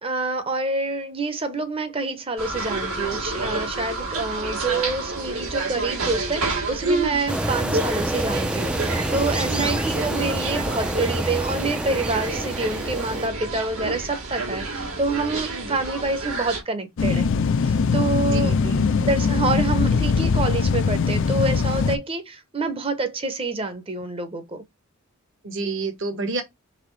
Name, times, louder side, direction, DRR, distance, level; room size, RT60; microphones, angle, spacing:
voice 1, 0.0-17.3 17.6-18.5 19.0-24.6, right 3 dB, 25° right, 0.7 m, -27 dB
sound 1, 2.4-16.6, right 3 dB, 80° right, 1.9 m, -29 dB
sound 2, 7.3-13.3, right 1 dB, 5° right, 0.3 m, -27 dB
voice 2, 9.5-9.8 15.5-15.8 18.2-18.9 25.4-26.4, right 3 dB, 60° right, 1.1 m, -30 dB
sound 3, 17.0-22.0, left 5 dB, 55° left, 0.5 m, -21 dB
4.1 x 3.6 x 3.1 m
head